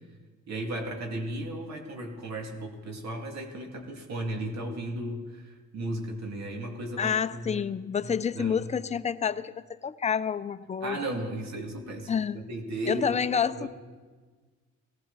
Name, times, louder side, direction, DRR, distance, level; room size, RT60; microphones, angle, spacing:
voice 1, 0.5-7.6 8.0-8.7 10.8-13.2 13.6-13.7, right 1 dB, 60° right, 2 dB, 2.4 m, -35 dB
voice 2, 7.0-9.5 9.8-11.0 12.1-12.4 12.9-13.7, left 7 dB, 25° left, 12 dB, 0.5 m, -28 dB
17.5 x 15.5 x 4.1 m, 1.4 s
cardioid pair, 90°, 30 cm